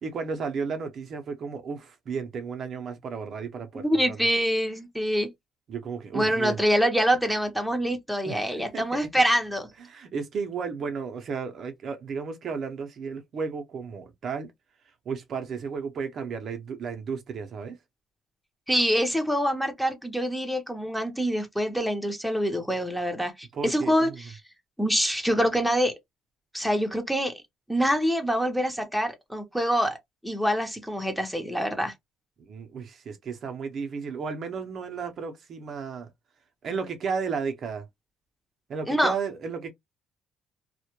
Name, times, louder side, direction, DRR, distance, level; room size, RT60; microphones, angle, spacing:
voice 1, 0.0-4.3 5.7-6.6 8.2-9.1 9.9-14.5 15.1-17.8 23.5-24.2 32.4-36.1 36.6-37.8 38.7-39.7, right 5 dB, 50° right, 0.5 m, -33 dB
voice 2, 3.7-5.3 6.1-9.7 18.7-24.3 24.8-25.9 26.5-27.3 27.7-30.0 30.2-31.9 38.9-39.1, equal, ahead, 0.6 m, -25 dB
2.1 x 2.1 x 2.9 m
cardioid pair, 110°, 0 cm